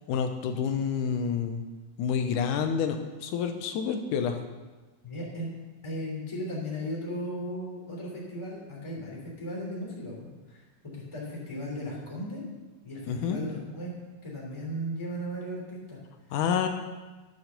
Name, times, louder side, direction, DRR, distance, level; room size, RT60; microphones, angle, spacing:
voice 1, 0.1-1.6 2.0-4.4 13.1-13.4 16.3-16.7, left 7 dB, 85° left, 6 dB, 2.3 m, -28 dB
voice 2, 5.0-5.5 5.8-10.6 10.9-12.4 12.8-13.9 14.2-16.0, equal, 10° left, -4 dB, 2.4 m, -36 dB
11.5 x 6.0 x 6.7 m, 1.2 s
omnidirectional pair, 3.6 m